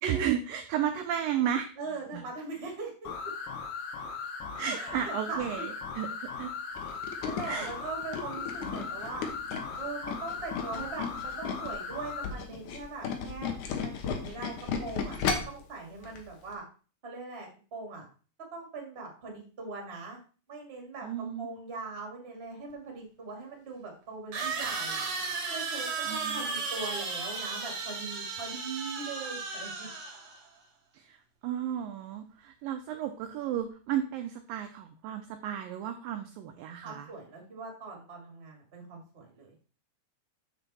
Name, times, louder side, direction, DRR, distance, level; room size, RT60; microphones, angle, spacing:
voice 1, 0.0-1.7 2.1-2.3 4.6-6.5 7.4-7.7 21.0-21.5 26.0-26.5 30.9-31.2 31.4-37.1, right 9 dB, 80° right, 6 dB, 2.0 m, -33 dB
voice 2, 1.8-3.1 4.7-5.7 7.2-9.3 9.8-13.5 13.8-16.6 17.0-18.1 18.4-20.2 20.5-25.0 25.5-29.9 36.8-39.5, right 4 dB, 25° right, 1 dB, 1.4 m, -41 dB
sound 1, 3.1-12.3, left 5 dB, 85° left, 3.4 m, -38 dB
Tools, 6.8-11.8 12.1-15.6 16.0-16.2 16.5-16.6, left 6 dB, 65° left, 2.1 m, -34 dB
sound 2, 22.7-22.8 24.3-30.4, right 4 dB, 55° right, 1.7 m, -35 dB
7.1 x 7.0 x 4.2 m, 0.38 s
omnidirectional pair, 4.7 m